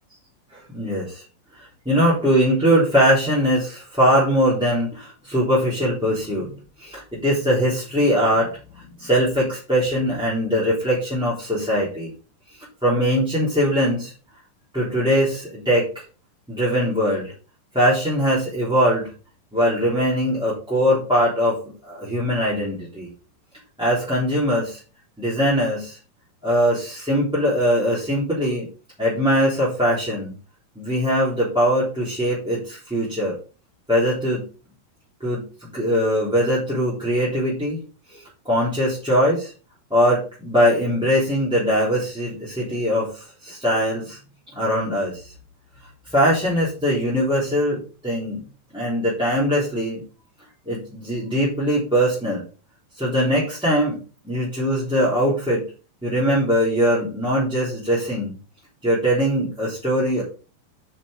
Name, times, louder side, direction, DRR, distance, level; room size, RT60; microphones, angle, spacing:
voice 1, 0.5-1.2 1.8-6.5 6.8-12.1 12.8-14.1 14.7-16.0 16.5-17.3 17.7-19.1 19.5-23.1 23.8-24.8 25.2-26.0 26.4-28.7 29.0-30.3 30.7-33.4 33.9-34.5 35.2-37.8 38.1-39.5 39.9-44.2 44.5-45.3 46.1-48.4 48.7-50.0 50.6-52.4 53.0-55.6 56.0-58.4 58.8-60.2, equal, ahead, -8 dB, 2.7 m, -21 dB
7.2 x 6.0 x 5.1 m, 0.35 s
omnidirectional pair, 4.6 m